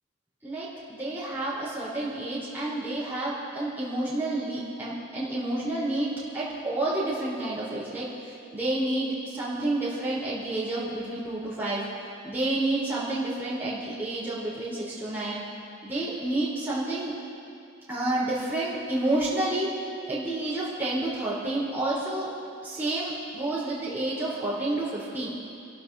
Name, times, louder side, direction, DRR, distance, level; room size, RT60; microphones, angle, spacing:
voice 1, 0.4-11.8 12.2-15.4 15.8-17.1 17.9-19.7 20.1-22.3 22.6-25.3, right 2 dB, 10° right, -10 dB, 3.8 m, -29 dB
29.5 x 12.0 x 2.7 m, 2.7 s
head